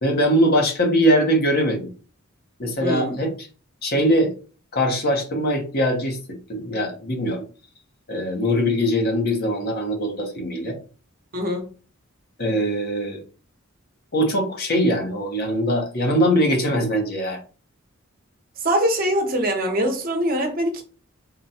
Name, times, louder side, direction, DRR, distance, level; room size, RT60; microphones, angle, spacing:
voice 1, 0.0-1.9 2.6-3.5 3.8-4.3 4.7-7.4 8.1-10.8 12.4-13.2 14.1-17.4, equal, 45° left, 0.9 m, -22 dB
voice 2, 2.8-3.2 11.3-11.7 18.6-20.8, equal, 45° right, 0.9 m, -23 dB
3.8 x 2.2 x 4.2 m
head